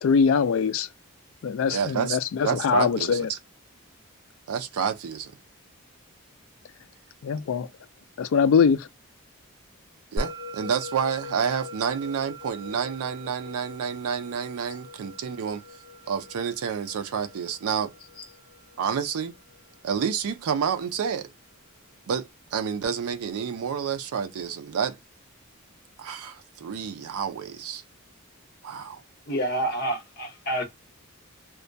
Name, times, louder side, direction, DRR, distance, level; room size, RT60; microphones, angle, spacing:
voice 1, 0.0-0.9 1.4-3.3 7.2-7.7 8.2-8.9, left 6 dB, 65° left, 0.3 m, -22 dB
voice 2, 1.7-2.2 2.4-3.4 4.5-5.4 10.1-15.6 16.1-17.9 18.8-19.3 19.8-21.3 22.1-25.0 26.0-27.8 28.6-29.0, right 7 dB, 85° right, 0.4 m, -29 dB
Musical instrument, 10.2-20.8, equal, 20° right, 0.5 m, -41 dB
voice 3, 29.3-30.6, right 1 dB, 45° left, 0.9 m, -28 dB
2.2 x 2.2 x 2.5 m
head